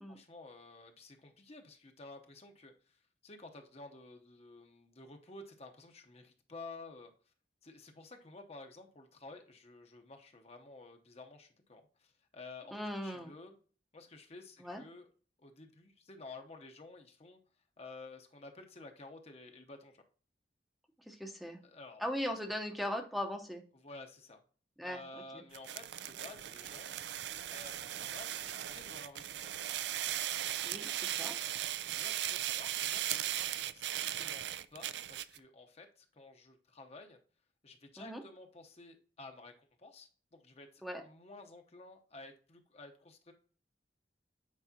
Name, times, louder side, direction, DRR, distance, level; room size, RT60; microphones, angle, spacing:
voice 1, 0.1-7.3 7.6-13.6 13.9-15.1 15.4-17.4 17.8-20.0 21.6-22.0 23.7-24.4 24.8-26.9 27.5-29.7 31.1-31.2 31.6-37.2 37.6-40.7 41.0-43.3, left 3 dB, 35° left, 5 dB, 0.8 m, -52 dB
voice 2, 12.7-13.3 14.6-14.8 21.0-21.6 22.0-23.6 24.8-25.4 30.6-31.4 38.0-38.2 40.8-41.0, equal, ahead, 3 dB, 0.7 m, -39 dB
sound 1, 25.5-35.4, right 12 dB, 70° right, 0.4 m, -38 dB
8.3 x 4.7 x 2.7 m, 0.41 s
head